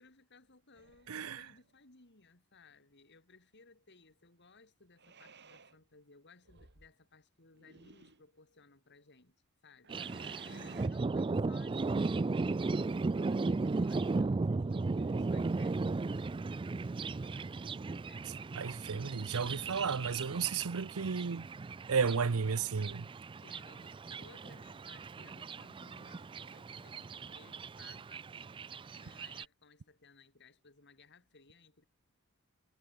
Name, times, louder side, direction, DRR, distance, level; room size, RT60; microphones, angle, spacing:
voice 1, 0.0-9.4 9.6-18.4 23.4-28.3 28.9-31.8, left 3 dB, 50° left, 3.4 m, -61 dB
sound 1, 0.7-1.6 5.0-5.8 6.4-6.9 7.5-8.2 9.8-10.9, right 3 dB, 50° right, 4.1 m, -54 dB
voice 2, 1.1-1.4 18.6-21.5 21.9-23.1, right 5 dB, 80° right, 0.7 m, -33 dB
Thunder, 9.9-29.5, right 3 dB, 25° right, 0.3 m, -36 dB
head